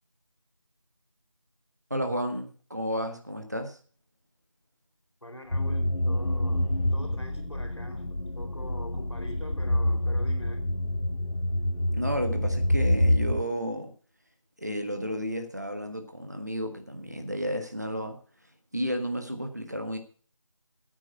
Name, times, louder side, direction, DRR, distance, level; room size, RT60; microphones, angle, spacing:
voice 1, 1.9-3.8 11.9-13.9 14.6-18.2 18.7-20.0, equal, 30° right, 1.5 m, -32 dB
voice 2, 5.2-10.7, left 1 dB, 60° left, 4.4 m, -44 dB
sound 1, 5.5-13.4, left 1 dB, 75° left, 1.5 m, -27 dB
9.1 x 9.0 x 9.3 m
figure-of-eight pair, 180°, 17 cm